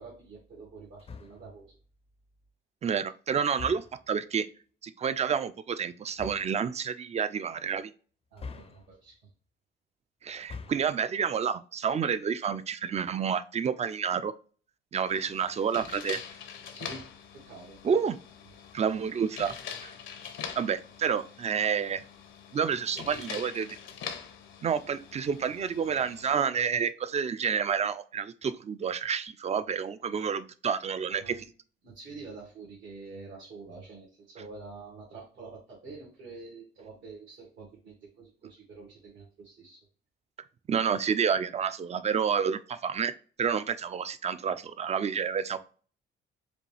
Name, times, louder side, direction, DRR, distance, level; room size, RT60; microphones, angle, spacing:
voice 1, 0.0-1.8 8.3-9.2 15.0-15.1 16.7-17.0 17.3-17.8 22.9-23.2 31.1-31.5 31.8-39.9, right 3 dB, 75° right, -5 dB, 1.7 m, -47 dB
sound 1, 1.0-1.6 3.5-4.2 6.1-6.6 8.4-9.2 10.3-11.0, left 4 dB, 30° left, 0.5 m, -44 dB
voice 2, 2.8-4.5 4.8-7.9 10.2-14.3 14.9-16.2 17.8-18.2 18.7-19.5 19.8-19.9 20.6-22.0 22.5-23.7 24.6-31.4 40.7-45.6, right 7 dB, 35° right, 13 dB, 0.4 m, -29 dB
sound 2, 15.1-26.3, left 7 dB, 75° left, 0.7 m, -44 dB
5.1 x 2.3 x 3.3 m, 0.40 s
cardioid pair, 90°, 20 cm